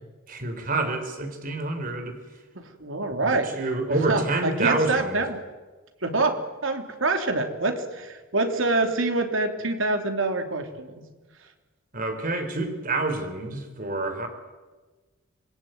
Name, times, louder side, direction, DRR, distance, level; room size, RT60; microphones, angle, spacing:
voice 1, 0.3-2.2 3.2-5.2 11.9-14.3, right 2 dB, 40° right, 6 dB, 4.1 m, -28 dB
voice 2, 2.5-5.4 6.0-11.0, right 2 dB, 70° right, 5 dB, 3.2 m, -26 dB
26.5 x 21.0 x 9.4 m, 1.3 s
head